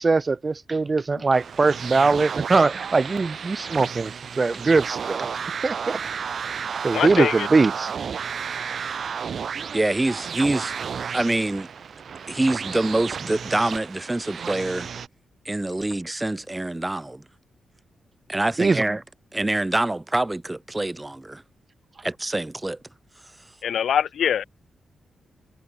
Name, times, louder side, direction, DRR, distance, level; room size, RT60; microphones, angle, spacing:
voice 1, 0.0-5.3 5.6-6.0 6.8-7.9 18.6-18.8, right 3 dB, 30° right, 2.5 m, -21 dB
sound 1, 1.3-15.1, right 7 dB, 55° right, 3.0 m, -32 dB
voice 2, 6.9-7.5 23.6-24.4, left 9 dB, 80° left, 2.5 m, -23 dB
voice 3, 9.7-10.7 11.1-11.7 12.3-14.9 15.5-17.2 18.3-19.0 19.3-21.4 22.0-22.8, right 2 dB, 15° right, 1.8 m, -25 dB
wide cardioid pair, 130°, 0 cm